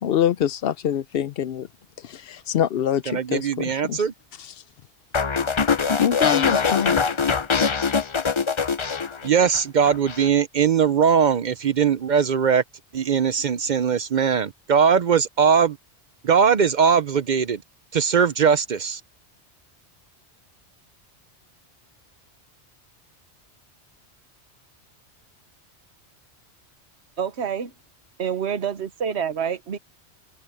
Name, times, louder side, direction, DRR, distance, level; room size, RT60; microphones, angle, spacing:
voice 1, 0.0-1.7 2.0-4.0 6.0-7.0, left 10 dB, 65° left, 0.7 m, -24 dB
voice 2, 3.1-4.1 9.2-12.6 12.9-15.8 16.2-17.6 17.9-19.0, right 7 dB, 50° right, 0.6 m, -20 dB
sound 1, 5.1-9.6 9.9-10.3, left 5 dB, 35° left, 0.6 m, -23 dB
voice 3, 27.2-27.7 28.2-29.8, right 7 dB, 75° right, 1.3 m, -27 dB
omnidirectional pair, 1.1 m